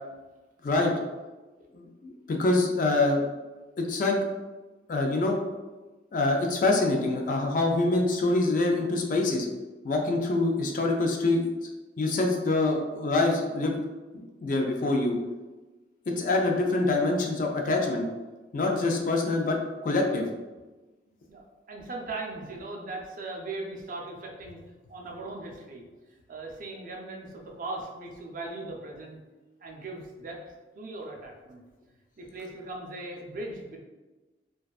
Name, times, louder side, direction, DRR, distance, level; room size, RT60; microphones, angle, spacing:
voice 1, 0.6-0.9 1.7-3.2 3.8-4.2 4.9-5.4 6.1-9.5 9.8-11.4 12.0-13.8 14.4-15.2 16.1-18.1 18.5-20.2, left 2 dB, 50° left, 2 dB, 0.3 m, -25 dB
voice 2, 21.3-24.6 24.9-25.8 26.3-29.2 29.6-31.6 32.2-33.8, right 2 dB, 50° right, 0 dB, 0.4 m, -39 dB
2.4 x 2.2 x 2.3 m, 1.2 s
head